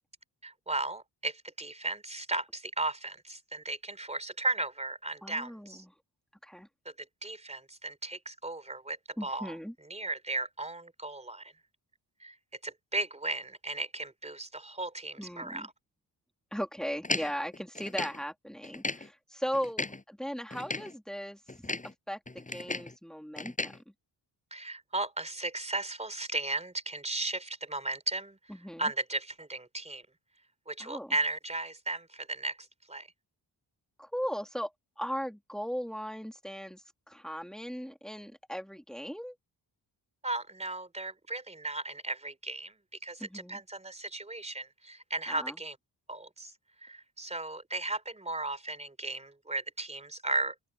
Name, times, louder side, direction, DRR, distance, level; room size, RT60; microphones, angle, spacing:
voice 1, 0.4-5.8 7.2-9.0 9.2-9.5 9.9-11.5 12.2-12.4 12.6-15.7 24.5-28.4 28.8-30.0 30.7-32.6 32.9-33.1 40.2-42.8 43.0-45.8 46.1-46.5 46.8-50.5, right 2 dB, 15° right, 3.8 m, -35 dB
voice 2, 5.2-5.9 6.4-6.7 9.2-9.7 15.2-15.7 16.5-21.7 22.1-23.8 28.5-28.9 30.8-31.2 34.0-34.7 35.0-39.4 43.2-43.6 45.3-45.6, equal, ahead, 2.2 m, -38 dB
sound 1, 17.0-18.2 18.6-19.1 19.5-20.0 20.5-20.9 21.5-21.9 22.3-22.9 23.4-23.8, left 2 dB, 15° left, 7.6 m, -36 dB
open air
wide cardioid pair, 150°, 43 cm